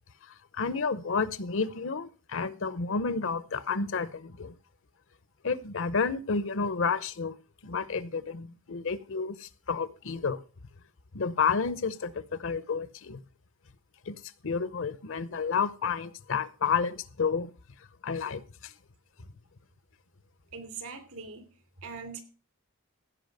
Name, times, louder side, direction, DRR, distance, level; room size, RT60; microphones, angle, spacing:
voice 1, 0.5-4.5 5.4-7.4 7.6-10.4 11.1-13.2 14.1-17.5 18.0-18.7, left 5 dB, 60° left, 0.7 m, -30 dB
voice 2, 20.5-21.5 21.8-22.2, right 5 dB, 75° right, 3.0 m, -41 dB
16.0 x 5.6 x 6.6 m
head